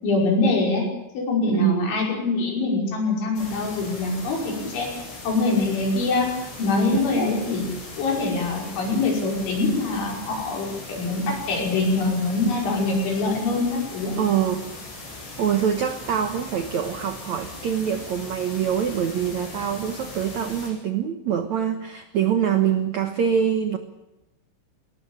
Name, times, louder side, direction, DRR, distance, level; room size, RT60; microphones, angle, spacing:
voice 1, 0.0-0.8 1.1-4.9 5.2-6.3 6.6-7.7 8.0-14.2, left 3 dB, 90° left, 0 dB, 7.8 m, -24 dB
voice 2, 1.5-2.0 6.9-7.4 14.2-14.7 15.4-23.8, right 9 dB, 80° right, 7 dB, 1.6 m, -24 dB
sound 1, 3.4-20.7, left 2 dB, 70° left, 9.1 m, -39 dB
20.0 x 19.5 x 8.8 m, 0.97 s
omnidirectional pair, 5.2 m